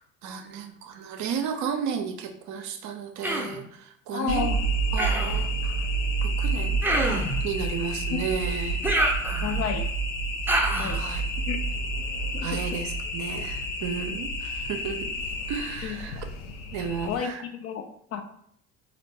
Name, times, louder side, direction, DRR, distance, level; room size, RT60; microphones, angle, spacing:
voice 1, 0.0-4.5 4.9-5.9 6.2-9.1 10.5-11.2 12.4-15.1 15.5-16.2 16.7-17.4, right 7 dB, 45° right, 6 dB, 0.6 m, -33 dB
Human voice, 3.2-3.6 5.0-5.4 6.8-7.4 8.8-9.7 10.5-11.0, right 1 dB, 5° right, 0.7 m, -26 dB
voice 2, 4.1-4.6 8.1-8.2 9.4-9.9 10.8-11.0 11.5-11.6 12.3-12.8 15.8-16.0 17.1-18.2, left 7 dB, 35° left, 6 dB, 0.5 m, -31 dB
sound 1, 4.3-17.2, right 2 dB, 75° left, 0.7 m, -29 dB
4.1 x 2.6 x 3.2 m, 0.66 s
figure-of-eight pair, 65°, 42 cm